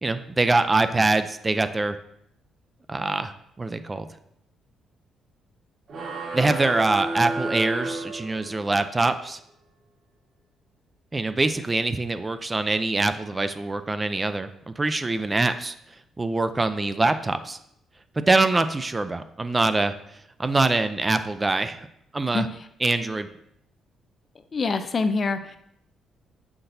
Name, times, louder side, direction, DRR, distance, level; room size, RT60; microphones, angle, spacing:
voice 1, 0.0-2.0 2.9-4.1 6.3-9.4 11.1-15.7 16.2-17.6 18.2-19.9 20.4-21.8 22.1-22.5 22.8-23.3, right 2 dB, 20° right, 10 dB, 0.5 m, -24 dB
sound 1, 5.9-8.8, right 2 dB, 60° right, 1.5 m, -31 dB
voice 2, 24.5-25.6, left 4 dB, 40° left, 10 dB, 0.5 m, -25 dB
7.9 x 5.8 x 2.7 m, 0.74 s
cardioid pair, 90°, 0 cm